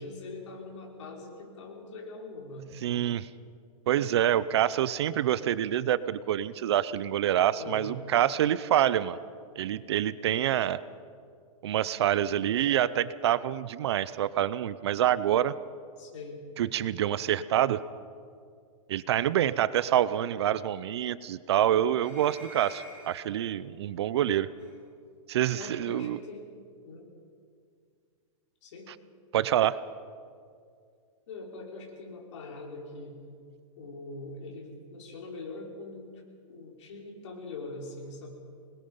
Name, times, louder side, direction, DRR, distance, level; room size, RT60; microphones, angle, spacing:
voice 1, 0.0-2.8 7.6-7.9 16.0-16.4 25.5-26.5 26.8-27.1 28.6-28.9 31.3-33.2 33.8-36.1 36.5-38.3, left 3 dB, 55° left, -1 dB, 5.3 m, -42 dB
voice 2, 2.8-3.3 3.9-9.2 9.6-10.8 11.6-15.5 16.6-17.8 18.9-24.5 25.3-26.2 28.9-29.0 29.3-29.8, right 11 dB, 50° right, 17 dB, 0.6 m, -26 dB
sound 1, 22.0-23.3 24.6-24.7 25.7-25.8, right 1 dB, 5° right, 7.9 m, -48 dB
25.5 x 21.0 x 5.6 m, 2.3 s
hypercardioid pair, 170°, 18 cm